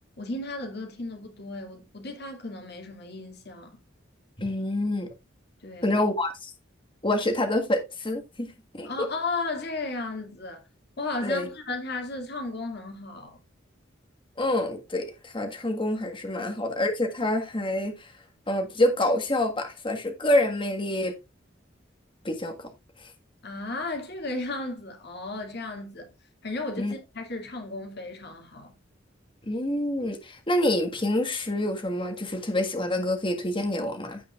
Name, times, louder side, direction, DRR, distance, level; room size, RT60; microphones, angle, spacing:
voice 1, 0.2-3.8 5.6-6.0 8.8-10.6 11.0-13.4 16.3-16.4 23.4-26.1 26.4-28.7, left 2 dB, 60° left, 2.5 m, -34 dB
voice 2, 4.4-5.1 5.8-6.5 7.0-9.1 11.2-11.5 14.4-18.1 18.5-21.2 22.2-22.7 26.8-26.9 29.5-34.2, left 1 dB, 25° left, 1.7 m, -27 dB
15.5 x 5.3 x 2.5 m
head